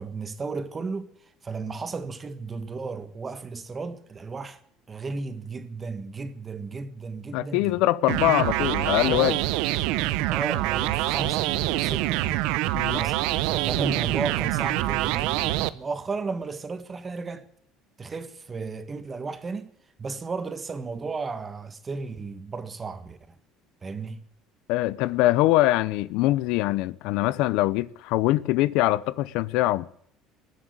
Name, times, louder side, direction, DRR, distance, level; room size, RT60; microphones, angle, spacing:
voice 1, 0.0-4.6 4.9-7.8 10.3-12.5 12.9-17.5 18.0-23.4 23.8-24.2, right 4 dB, 25° right, 1.5 m, -34 dB
voice 2, 7.3-9.4 12.7-13.0 24.7-29.9, left 16 dB, 75° left, 0.6 m, -23 dB
sound 1, 8.1-15.7, right 17 dB, 80° right, 0.7 m, -25 dB
20.0 x 7.5 x 9.5 m
cardioid pair, 120°, 0 cm